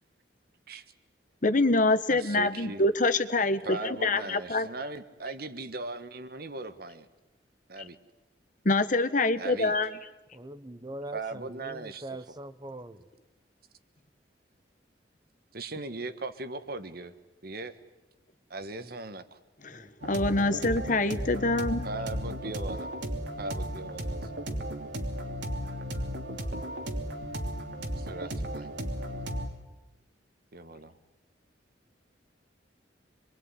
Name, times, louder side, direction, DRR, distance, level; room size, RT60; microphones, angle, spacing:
voice 1, 1.4-4.7 8.6-9.9 19.6-21.9, left 2 dB, 45° left, 11 dB, 1.3 m, -25 dB
voice 2, 2.1-2.8 3.6-7.1 7.7-8.0 9.4-9.7 11.1-12.4 15.5-17.1 17.4-17.8 18.5-19.4 21.8-22.9 23.4-24.3 26.9-27.0 28.0-28.8 30.5-30.9, right 3 dB, 60° right, 11 dB, 1.5 m, -39 dB
voice 3, 10.3-13.0 18.8-18.9 19.7-19.9, right 1 dB, 25° right, 13 dB, 1.1 m, -42 dB
sound 1, 20.0-29.5, equal, 80° right, 3.1 m, -35 dB
26.5 x 22.5 x 9.8 m, 1.0 s
head